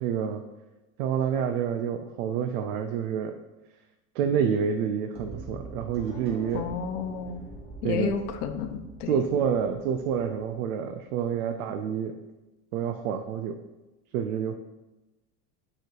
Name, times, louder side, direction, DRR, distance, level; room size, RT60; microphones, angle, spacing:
voice 1, 0.0-0.4 1.0-3.4 4.1-6.7 7.8-8.1 9.1-12.2 12.7-13.6 14.1-14.6, right 7 dB, 65° right, 6 dB, 0.6 m, -28 dB
sound 1, 5.1-11.1, right 2 dB, 15° right, 0.5 m, -44 dB
voice 2, 6.5-7.4 7.8-9.2, left 7 dB, 70° left, 8 dB, 0.8 m, -31 dB
7.1 x 3.2 x 4.5 m, 1.1 s
supercardioid pair, 160°, 46 cm